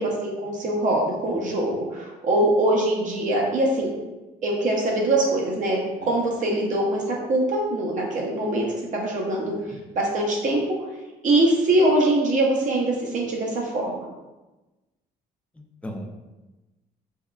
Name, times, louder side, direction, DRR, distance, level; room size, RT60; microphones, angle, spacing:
voice 1, 0.0-3.9 4.4-8.7 8.9-9.5 10.0-10.6 11.2-14.1, right 1 dB, 50° right, -1 dB, 0.5 m, -23 dB
voice 2, 9.4-9.8 15.8-16.1, equal, 5° left, 2 dB, 0.3 m, -38 dB
3.5 x 2.1 x 2.2 m, 1.1 s
cardioid pair, 110°, 17 cm